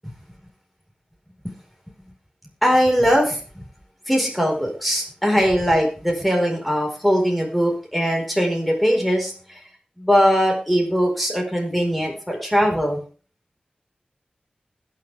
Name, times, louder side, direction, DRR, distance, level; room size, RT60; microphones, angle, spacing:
voice 1, 2.6-3.4 4.1-9.6 10.0-13.0, equal, ahead, 0 dB, 4.7 m, -20 dB
20.5 x 6.9 x 3.5 m, 0.38 s
wide cardioid pair, 85°, 3 cm